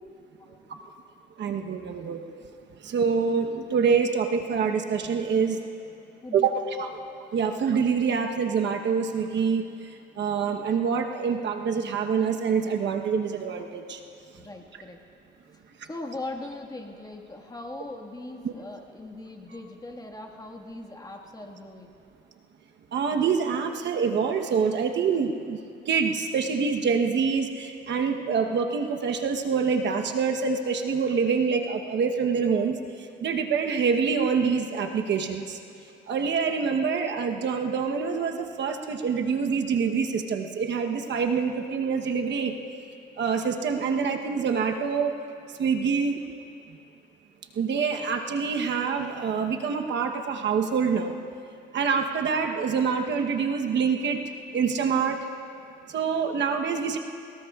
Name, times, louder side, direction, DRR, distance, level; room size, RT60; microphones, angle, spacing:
voice 1, 1.4-2.2 2.8-5.6 6.3-6.9 7.3-9.6 10.2-14.0 18.4-18.5 22.9-25.6 25.9-32.8 33.2-35.6 36.1-42.5 43.2-45.1 45.6-46.2 47.6-51.1 51.7-54.2 54.5-55.2 55.9-57.0, right 6 dB, 65° right, 3 dB, 1.1 m, -26 dB
voice 2, 14.4-15.0 15.9-21.9, left 2 dB, 20° left, 0 dB, 1.7 m, -40 dB
23.5 x 20.0 x 2.4 m, 2.6 s
cardioid pair, 90°, 20 cm